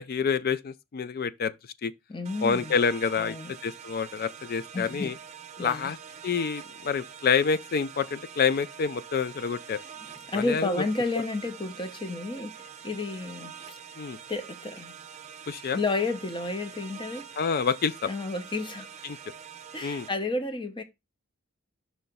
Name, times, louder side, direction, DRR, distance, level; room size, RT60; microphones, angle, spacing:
voice 1, 0.0-1.5 1.8-1.9 2.4-3.4 3.6-5.1 5.6-6.0 6.2-9.8 10.3-10.8 14.0-14.2 15.5-15.8 17.4-18.1 19.0-19.2 19.8-20.1, left 6 dB, 45° left, 0.4 m, -27 dB
voice 2, 2.1-2.7 3.2-3.5 4.7-5.1 5.6-5.9 10.3-13.8 14.3-15.0 15.7-17.3 18.1-18.9 19.7-20.8, left 3 dB, 25° left, 0.8 m, -31 dB
sound 1, 2.2-20.1, right 8 dB, 30° right, 0.7 m, -45 dB
5.7 x 3.2 x 5.3 m
head